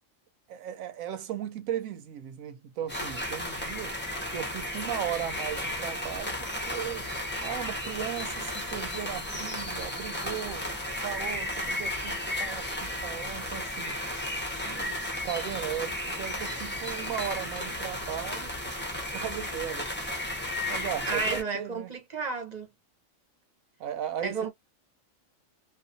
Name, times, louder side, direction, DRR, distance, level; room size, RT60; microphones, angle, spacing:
voice 1, 0.5-3.9 4.3-7.1 7.4-10.7 11.0-14.0 14.7-18.5 19.1-19.9 20.7-21.9 23.8-24.5, right 10 dB, 85° right, 1.0 m, -36 dB
sound 1, 2.9-21.4, left 1 dB, 15° left, 0.3 m, -34 dB
voice 2, 21.1-22.7 24.2-24.5, right 4 dB, 40° right, 0.6 m, -32 dB
2.4 x 2.3 x 2.5 m
omnidirectional pair, 1.4 m